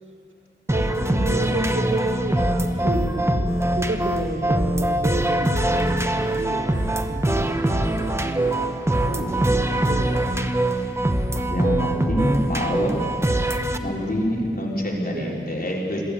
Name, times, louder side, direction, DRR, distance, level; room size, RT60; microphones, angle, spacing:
sound 1, 0.7-13.8, right 1 dB, 15° right, 1.1 m, -23 dB
voice 1, 0.7-9.4 9.9-10.3 13.8-14.1 15.1-15.4, right 2 dB, 85° right, 3 dB, 1.8 m, -32 dB
voice 2, 11.5-12.9 13.8-16.0, equal, 50° left, -3 dB, 4.3 m, -25 dB
22.5 x 14.0 x 8.5 m, 2.5 s
wide cardioid pair, 65°, 20 cm